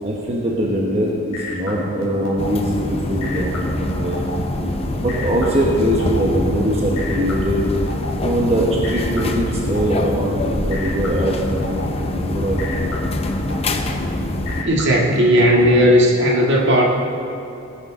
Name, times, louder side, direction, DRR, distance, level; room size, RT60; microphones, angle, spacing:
voice 1, 0.0-4.2 5.0-7.7 8.2-11.8 12.1-12.6, right 1 dB, 30° right, -2 dB, 1.2 m, -22 dB
sound 1, 0.8-15.7, left 1 dB, 85° left, 2.7 m, -30 dB
sound 2, 2.4-14.6, left 1 dB, 30° left, 0.7 m, -25 dB
voice 2, 14.6-16.8, equal, 60° right, -1 dB, 1.8 m, -15 dB
18.0 x 9.7 x 3.7 m, 2.7 s
head